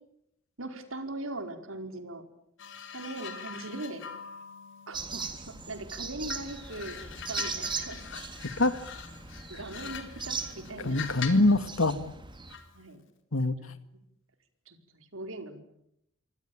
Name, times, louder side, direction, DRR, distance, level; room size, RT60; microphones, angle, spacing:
voice 1, 0.6-2.2 2.9-4.1 4.9-7.0 7.3-8.0 9.3-11.1 12.7-13.0 13.6-13.8 14.7-15.6, right 2 dB, 75° right, 6 dB, 5.0 m, -40 dB
sound 1, 2.6-5.8 6.3-11.5 12.5-12.7, left 7 dB, 65° left, 4.2 m, -43 dB
sound 2, 4.9-12.5, right 4 dB, 25° right, 3.4 m, -39 dB
voice 2, 10.8-12.0 13.3-13.6, left 2 dB, 80° left, 11 dB, 2.1 m, -24 dB
27.5 x 24.5 x 8.8 m, 0.77 s
head